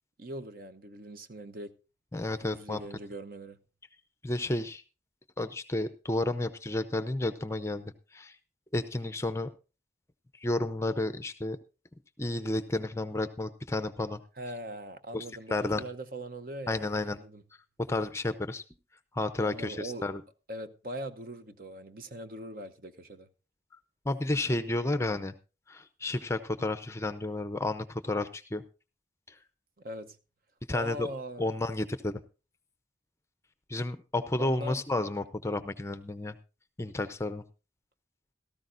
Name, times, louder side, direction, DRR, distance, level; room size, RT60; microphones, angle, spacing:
voice 1, 0.2-1.7 2.4-3.6 14.4-16.8 17.0-17.4 19.4-20.1 20.5-23.3 29.8-30.2 30.7-31.5 34.4-34.8, right 1 dB, 50° right, 0.8 m, -41 dB
voice 2, 2.1-2.8 4.2-4.8 5.4-8.4 8.7-9.5 10.3-11.6 12.2-14.2 15.1-15.2 15.5-15.8 16.7-17.2 17.9-18.6 19.1-20.2 23.7-23.8 24.0-25.4 25.7-28.6 29.3-29.4 30.7-31.1 31.4-32.2 33.7-36.4 36.8-37.4, left 2 dB, 15° left, 0.6 m, -31 dB
17.0 x 13.5 x 2.6 m
head